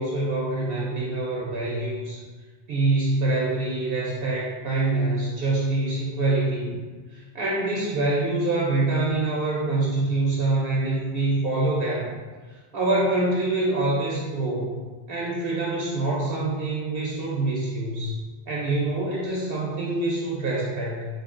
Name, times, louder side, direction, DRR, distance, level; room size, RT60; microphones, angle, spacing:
voice 1, 0.0-2.3 2.7-6.8 7.1-12.2 12.5-14.8 15.1-18.2 18.5-21.1, right 2 dB, 65° right, -4 dB, 0.8 m, -25 dB
4.2 x 2.6 x 2.4 m, 1.4 s
omnidirectional pair, 1.1 m